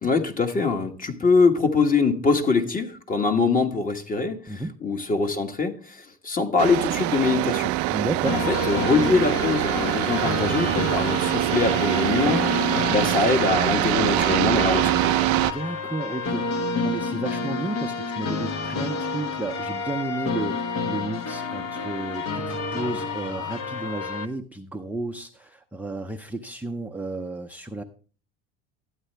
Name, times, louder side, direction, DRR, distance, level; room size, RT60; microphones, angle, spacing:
voice 1, 0.0-7.7 8.5-12.4 12.9-15.0, left 4 dB, 25° left, 1.5 m, -23 dB
sound 1, 6.6-15.5, right 18 dB, 65° right, 0.5 m, -24 dB
voice 2, 7.9-8.4 15.3-27.8, right 2 dB, 5° right, 0.6 m, -32 dB
sound 2, 8.3-24.3, left 4 dB, 55° left, 1.4 m, -29 dB
12.5 x 8.9 x 3.3 m
supercardioid pair, 95°, 31 cm